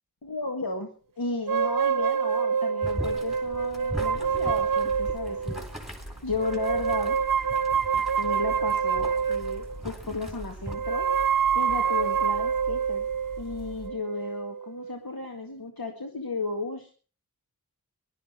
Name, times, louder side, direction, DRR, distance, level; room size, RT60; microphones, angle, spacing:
voice 1, 0.2-0.9 1.2-5.6 6.2-7.2 8.2-11.1 11.5-13.1 13.4-16.9, left 3 dB, 80° left, 2 dB, 1.9 m, -34 dB
sound 1, 1.5-5.7 6.4-9.8 10.7-15.0, right 7 dB, 65° right, 0.7 m, -27 dB
Boiling, 2.8-10.7, equal, ahead, 4.0 m, -40 dB
sound 2, 4.9-13.9, equal, 65° left, 3.6 m, -44 dB
20.0 x 12.0 x 4.4 m, 0.39 s
wide cardioid pair, 50°, 35 cm